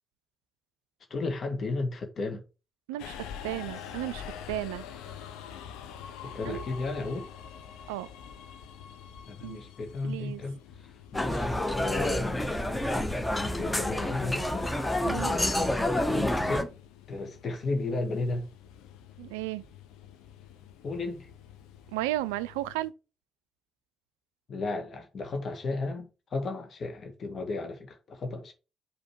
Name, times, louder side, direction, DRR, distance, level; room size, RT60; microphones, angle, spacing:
voice 1, 1.1-2.4 6.2-7.3 9.3-12.5 12.9-13.2 13.5-14.7 15.1-15.4 16.1-16.7 17.1-18.5 20.8-21.3 24.5-28.5, left 3 dB, 50° left, 1.8 m, -34 dB
Subway metro underground, 3.0-22.9, left 8 dB, 70° left, 0.8 m, -46 dB
voice 2, 3.4-4.8 6.4-6.6 7.9-8.1 9.4-9.6 10.0-10.4 15.1-15.4 19.2-19.7 21.9-22.9, right 16 dB, 75° right, 0.3 m, -34 dB
sound 1, 11.1-16.6, left 1 dB, 15° left, 1.4 m, -28 dB
5.5 x 5.0 x 6.0 m
figure-of-eight pair, 40°, 0 cm